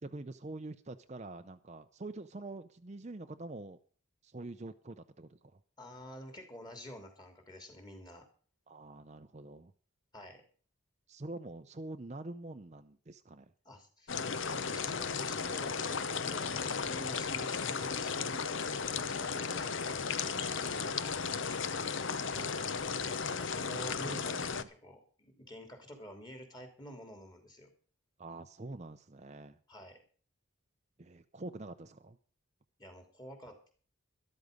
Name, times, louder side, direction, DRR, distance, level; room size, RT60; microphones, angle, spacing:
voice 1, 0.0-3.8 4.2-5.4 8.7-9.7 11.1-13.5 22.3-22.6 23.6-24.5 28.2-29.6 31.0-32.2, right 2 dB, 30° right, 8 dB, 0.6 m, -45 dB
voice 2, 5.8-8.2 10.1-10.4 13.6-14.2 14.5-21.9 23.3-27.7 29.7-30.0 32.8-33.7, equal, 20° left, 6 dB, 2.9 m, -49 dB
sound 1, 14.1-24.6, left 5 dB, 60° left, 0.8 m, -35 dB
13.0 x 12.5 x 5.2 m, 0.43 s
head